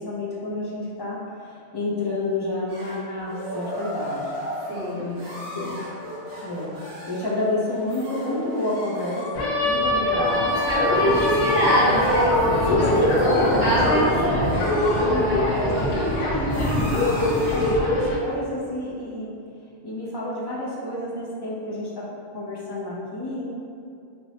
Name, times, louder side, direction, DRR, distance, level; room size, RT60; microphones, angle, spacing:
voice 1, 0.0-4.3 4.9-5.1 5.5-5.7 6.4-10.6 11.0-11.3 12.6-14.5 15.1-15.2 15.6-19.3 19.8-22.0 22.3-23.5, left 2 dB, 35° left, -7 dB, 0.4 m, -28 dB
sound 1, 2.7-17.9, equal, 60° right, 1.3 m, -35 dB
voice 2, 4.7-5.7 9.7-10.3 10.7-12.3 12.8-13.0 13.2-14.1 14.3-15.3, right 1 dB, 75° right, -10 dB, 1.4 m, -25 dB
sound 2, 9.3-18.2, left 1 dB, 85° left, 1.0 m, -23 dB
4.5 x 2.1 x 2.8 m, 2.4 s
omnidirectional pair, 1.2 m